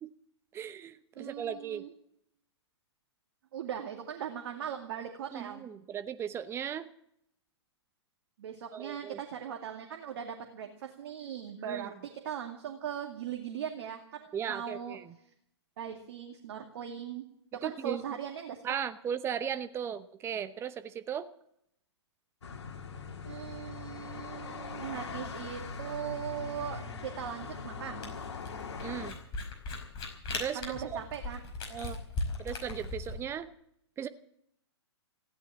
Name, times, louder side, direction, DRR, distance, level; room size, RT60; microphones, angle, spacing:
voice 1, 0.5-1.9 5.3-6.9 8.7-9.2 11.6-11.9 14.3-15.0 17.6-18.0 18.6-21.2 28.8-29.2 30.3-30.6 30.9-31.0 31.7-32.0 32.4-33.5 34.0-34.1, right 8 dB, 15° right, 12 dB, 0.8 m, -37 dB
voice 2, 1.2-1.9 3.5-5.6 8.4-15.0 15.8-17.3 17.6-18.8 23.2-28.1 30.5-31.4, right 9 dB, 55° right, 3 dB, 2.3 m, -39 dB
sound 1, 22.4-29.1, left 4 dB, 70° left, 2.5 m, -41 dB
Camera, 28.0-33.2, left 2 dB, 30° left, 5.1 m, -38 dB
16.0 x 12.0 x 7.5 m, 0.71 s
hypercardioid pair, 120°, 15 cm